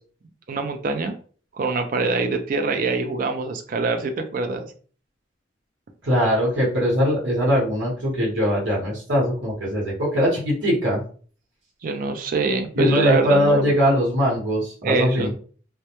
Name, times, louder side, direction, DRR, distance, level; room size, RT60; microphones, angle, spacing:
voice 1, 0.5-1.1 1.5-4.7 11.8-13.8 14.8-15.3, right 3 dB, 50° right, 6 dB, 0.4 m, -24 dB
voice 2, 6.0-11.0 12.7-15.3, equal, 80° right, -3 dB, 1.0 m, -21 dB
2.1 x 2.1 x 2.8 m, 0.42 s
head